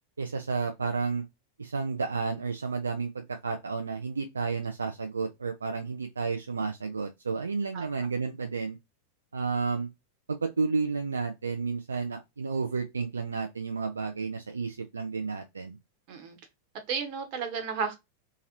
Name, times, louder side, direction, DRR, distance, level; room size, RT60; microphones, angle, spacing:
voice 1, 0.2-1.2 1.6-8.8 9.3-9.9 10.3-15.8, right 4 dB, 75° right, 0.4 m, -31 dB
voice 2, 16.9-17.9, right 6 dB, 45° right, 1.0 m, -32 dB
2.9 x 2.8 x 2.5 m
figure-of-eight pair, 90°, 0 cm